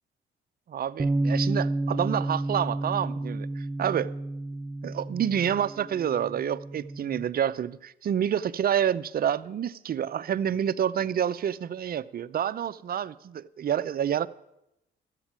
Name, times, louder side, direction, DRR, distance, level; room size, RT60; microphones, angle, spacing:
voice 1, 0.7-4.1 4.8-14.3, right 9 dB, 50° right, 0.6 m, -28 dB
Bass guitar, 1.0-7.2, right 2 dB, 20° right, 0.9 m, -31 dB
13.0 x 8.2 x 8.8 m
cardioid pair, 90°, 20 cm